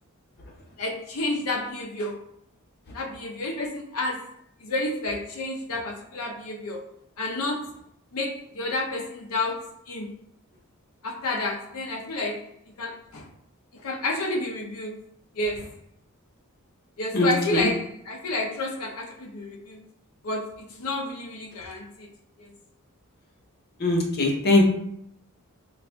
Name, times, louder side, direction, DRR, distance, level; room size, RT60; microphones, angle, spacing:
voice 1, 0.8-2.2 2.9-4.3 4.6-6.8 7.2-7.7 8.1-10.1 11.0-12.5 12.8-13.3 13.7-15.0 15.3-15.7 17.0-19.8 20.2-22.1 22.4-22.5, left 2 dB, 85° left, 0 dB, 0.7 m, -30 dB
voice 2, 17.1-17.7 23.8-24.6, left 1 dB, 50° left, 0 dB, 0.8 m, -21 dB
4.0 x 2.5 x 2.3 m, 0.71 s
head